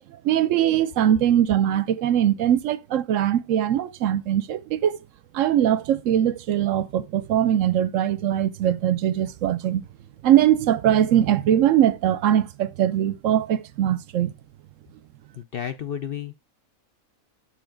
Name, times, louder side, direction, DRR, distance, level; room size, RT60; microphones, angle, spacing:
voice 1, 0.2-5.0 5.3-9.8 10.2-14.3, right 11 dB, 70° right, 0.9 m, -21 dB
voice 2, 15.4-16.4, left 9 dB, 55° left, 0.7 m, -32 dB
6.9 x 6.2 x 3.8 m
omnidirectional pair, 1.5 m